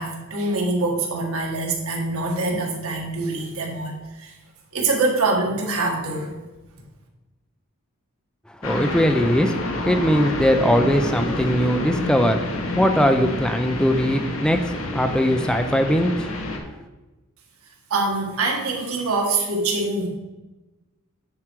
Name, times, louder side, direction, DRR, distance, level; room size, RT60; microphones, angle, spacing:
voice 1, 0.0-4.3 4.7-6.4 17.9-20.1, right 3 dB, 90° right, 0 dB, 1.7 m, -24 dB
voice 2, 8.5-16.6, equal, 5° left, 6 dB, 0.4 m, -21 dB
sound 1, 8.6-16.6, left 2 dB, 70° left, 1.3 m, -28 dB
9.5 x 4.6 x 4.6 m, 1.1 s
head